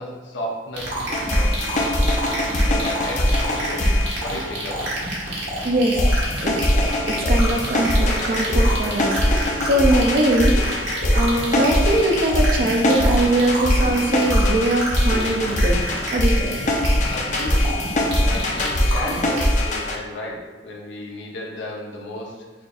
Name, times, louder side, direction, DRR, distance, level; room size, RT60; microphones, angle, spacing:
voice 1, 0.0-3.9 4.2-4.9 17.0-17.9 18.2-22.7, left 1 dB, 75° left, -2 dB, 0.8 m, -34 dB
sound 1, 0.7-19.5, right 1 dB, 75° right, 1.2 m, -29 dB
sound 2, 1.1-4.8 6.0-20.0, left 1 dB, 40° left, 0.5 m, -22 dB
voice 2, 5.6-6.1 6.4-6.6 7.1-10.8 11.1-15.8 16.1-16.6, right 1 dB, 50° right, 1 dB, 0.5 m, -21 dB
6.1 x 2.6 x 2.4 m, 1.3 s
head